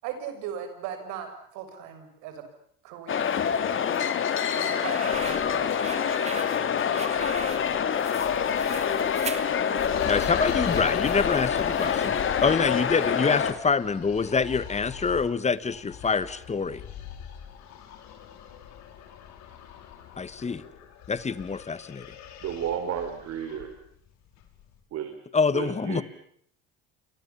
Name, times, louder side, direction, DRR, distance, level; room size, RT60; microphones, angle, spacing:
voice 1, 0.0-2.4 2.8-3.4 4.6-6.2 8.2-8.3, right 8 dB, 80° right, 7 dB, 6.7 m, -39 dB
sound 1, 3.1-13.5, left 7 dB, 45° left, 3.1 m, -26 dB
sound 2, 4.6-12.2, right 4 dB, 25° right, 2.7 m, -41 dB
sound 3, 5.1-24.8, left 9 dB, 70° left, 5.8 m, -43 dB
voice 2, 10.0-16.8 20.2-20.6 21.1-22.0 25.3-26.0, left 5 dB, 25° left, 16 dB, 1.6 m, -26 dB
voice 3, 22.4-23.7 24.9-25.2 25.5-26.0, right 9 dB, 60° right, 6 dB, 4.2 m, -32 dB
29.5 x 24.5 x 7.2 m, 0.65 s
supercardioid pair, 90°, 29 cm